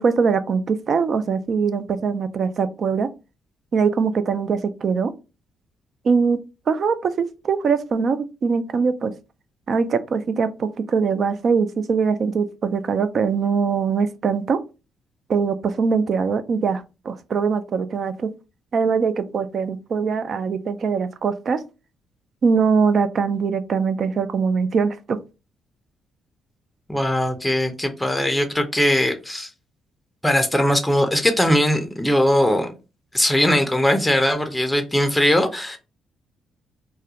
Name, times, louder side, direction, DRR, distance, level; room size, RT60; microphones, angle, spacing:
voice 1, 0.0-3.1 3.7-5.1 6.0-6.4 6.7-9.1 9.7-14.6 15.3-18.3 18.7-21.6 22.4-25.2, right 5 dB, 55° right, 0.3 m, -22 dB
voice 2, 26.9-29.5 30.2-32.7 33.1-35.8, left 1 dB, 5° left, 0.5 m, -20 dB
2.3 x 2.1 x 2.8 m
cardioid pair, 90°, 0 cm